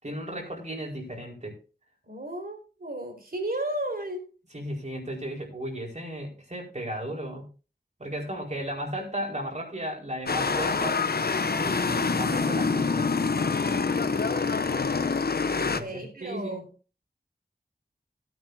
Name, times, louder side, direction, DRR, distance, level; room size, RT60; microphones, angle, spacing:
voice 1, 0.0-1.6 4.5-7.5 8.0-11.0 11.6-13.2 15.6-16.6, right 1 dB, 45° right, 4.5 m, -35 dB
voice 2, 2.0-4.3 15.6-16.7, right 1 dB, 65° right, 4.3 m, -34 dB
sound 1, 10.3-15.8, left 4 dB, 70° left, 0.8 m, -26 dB
17.0 x 9.5 x 2.7 m
wide cardioid pair, 55°, 17 cm